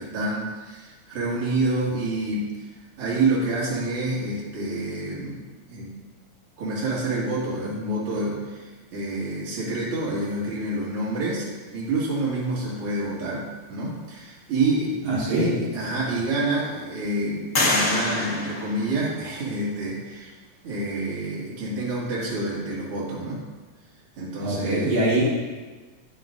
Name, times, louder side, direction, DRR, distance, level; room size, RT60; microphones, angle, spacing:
voice 1, 0.0-2.6 3.0-5.4 5.7-6.0 6.6-20.3 20.6-23.4 24.2-25.0, right 2 dB, 45° right, -7 dB, 2.9 m, -28 dB
voice 2, 15.1-15.6 24.4-25.3, right 1 dB, 70° right, -7 dB, 3.4 m, -23 dB
sound 1, 15.3-15.4 16.0-16.6 17.5-19.5, left 2 dB, 55° left, 0.7 m, -27 dB
10.0 x 9.4 x 2.6 m, 1.3 s
omnidirectional pair, 3.5 m